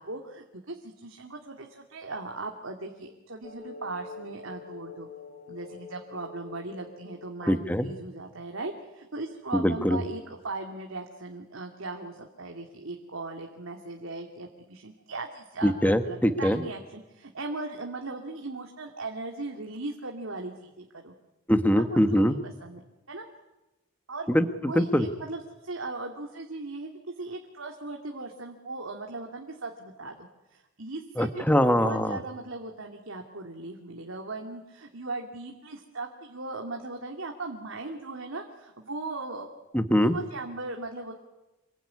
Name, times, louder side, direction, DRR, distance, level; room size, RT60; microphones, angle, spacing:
voice 1, 0.0-5.1 5.5-21.1 21.9-22.8 23.1-23.3 24.1-24.3 24.7-26.9 27.2-39.5 40.1-41.1, right 3 dB, 75° right, 2 dB, 2.7 m, -38 dB
sound 1, 3.4-8.1, left 4 dB, 40° left, 3.8 m, -46 dB
voice 2, 7.5-7.9 9.5-10.0 15.6-16.6 21.5-22.4 24.3-25.1 31.2-32.2 39.7-40.2, equal, 10° left, 9 dB, 1.6 m, -23 dB
27.5 x 22.0 x 9.8 m, 1.0 s
head